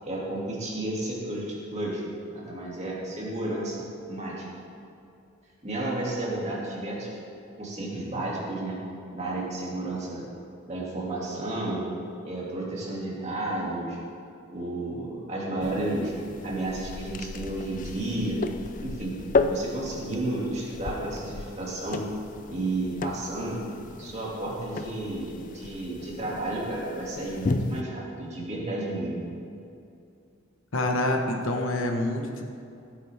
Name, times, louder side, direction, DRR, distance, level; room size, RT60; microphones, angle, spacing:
voice 1, 0.0-2.0 2.3-4.5 5.6-7.2 7.6-8.8 9.1-10.3 10.7-11.9 12.2-14.0 14.5-18.4 18.8-19.2 19.5-22.1 22.5-23.6 24.0-29.3, right 2 dB, 35° right, -5 dB, 2.4 m, -32 dB
sound 1, 15.6-27.8, left 3 dB, 40° left, 0.4 m, -34 dB
voice 2, 30.7-32.4, left 1 dB, 75° left, 3 dB, 1.2 m, -26 dB
15.5 x 9.1 x 3.5 m, 2.6 s
head